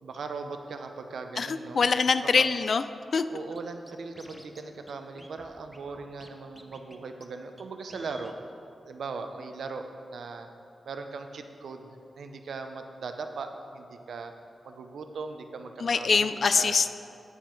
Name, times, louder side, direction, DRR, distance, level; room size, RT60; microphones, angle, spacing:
voice 1, 0.0-1.8 2.3-2.4 3.3-8.3 8.8-9.9 10.1-10.5 10.8-11.9 12.1-14.3 14.6-16.3 16.5-16.8, right 4 dB, 85° right, 6 dB, 0.6 m, -39 dB
voice 2, 1.4-2.8 3.1-3.2 15.8-16.9, left 5 dB, 55° left, 12 dB, 0.3 m, -24 dB
Scratching (performance technique), 3.6-3.7 3.9-4.6 4.9-5.0 5.2-6.3 6.6-7.0 7.2-7.3 7.6-7.7 7.9-8.4, equal, ahead, 0.6 m, -50 dB
9.4 x 7.0 x 4.5 m, 2.5 s
wide cardioid pair, 145°, 0 cm